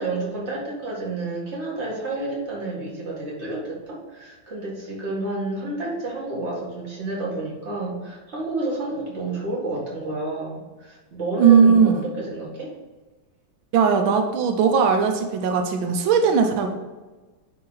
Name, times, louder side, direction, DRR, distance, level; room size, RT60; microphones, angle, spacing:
voice 1, 0.0-12.7, right 2 dB, 35° right, -5 dB, 2.1 m, -30 dB
voice 2, 11.4-12.1 13.7-16.7, right 6 dB, 90° right, 5 dB, 1.5 m, -18 dB
9.8 x 3.8 x 4.0 m, 1.2 s
omnidirectional pair, 2.1 m